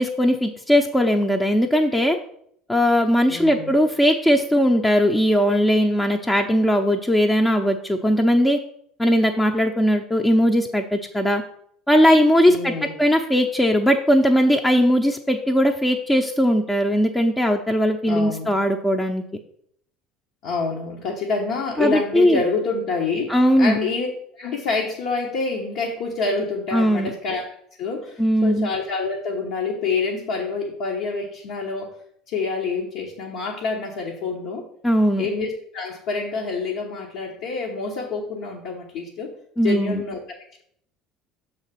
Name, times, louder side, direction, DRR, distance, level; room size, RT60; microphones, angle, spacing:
voice 1, 0.0-2.2 2.7-8.6 9.0-11.4 11.9-19.2 21.8-22.4 23.3-23.8 26.7-27.1 28.2-28.7 34.8-35.3 39.6-40.0, equal, 10° left, 3 dB, 0.7 m, -19 dB
voice 2, 3.3-3.7 12.5-12.9 18.1-18.5 20.4-24.1 24.3-27.5 27.8-31.9 32.3-34.6 35.2-39.3 39.6-40.4, left 4 dB, 65° left, 0 dB, 1.1 m, -27 dB
6.5 x 4.1 x 5.7 m, 0.67 s
hypercardioid pair, 70°, 0 cm